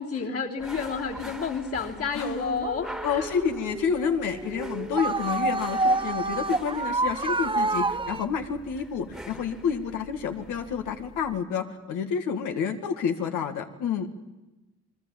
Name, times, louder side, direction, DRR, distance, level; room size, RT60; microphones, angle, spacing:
voice 1, 0.0-3.3, left 5 dB, 50° left, 0 dB, 3.2 m, -30 dB
sound 1, 0.6-11.4, equal, ahead, 1.8 m, -45 dB
voice 2, 2.1-2.7 3.0-14.1, left 6 dB, 85° left, 5 dB, 2.0 m, -29 dB
sound 2, 2.6-8.3, right 2 dB, 15° right, 0.9 m, -28 dB
28.5 x 20.5 x 7.4 m, 1.1 s
cardioid pair, 90°, 30 cm